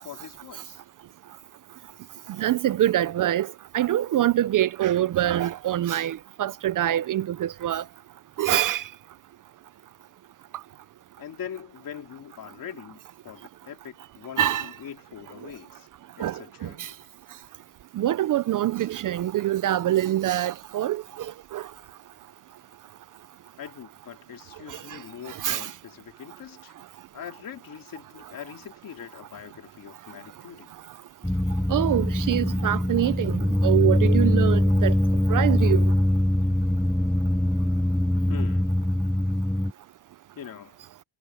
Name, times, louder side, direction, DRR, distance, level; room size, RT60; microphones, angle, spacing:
voice 1, 0.0-0.8 11.2-15.9 16.2-16.9 23.6-26.7 27.1-30.8 38.3-38.7 40.3-40.8, left 9 dB, 50° left, 3.2 m, -42 dB
voice 2, 2.4-7.8 8.4-8.8 14.4-14.7 16.2-16.9 18.0-21.7 24.7-24.8 25.3-25.7 31.7-34.9 35.3-35.8, right 12 dB, 45° right, 0.5 m, -25 dB
sound 1, 31.2-39.7, left 1 dB, ahead, 0.5 m, -22 dB
cardioid pair, 135°, 44 cm